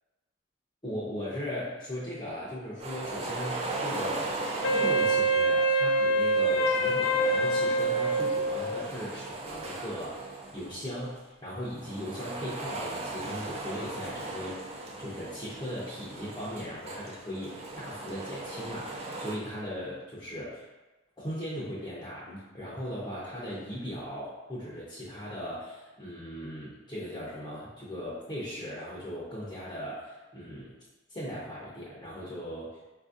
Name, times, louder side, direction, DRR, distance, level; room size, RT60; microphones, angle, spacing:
voice 1, 0.8-4.4 4.7-14.6 15.0-20.6 21.2-30.7 31.1-32.7, equal, 20° left, -9 dB, 0.6 m, -38 dB
sound 1, 2.8-5.6 6.2-11.0 11.6-19.4, right 2 dB, 30° right, 0.4 m, -38 dB
Wind instrument woodwind instrument, 4.6-8.9, right 2 dB, 70° left, 0.3 m, -25 dB
4.2 x 2.6 x 2.4 m, 1.1 s
head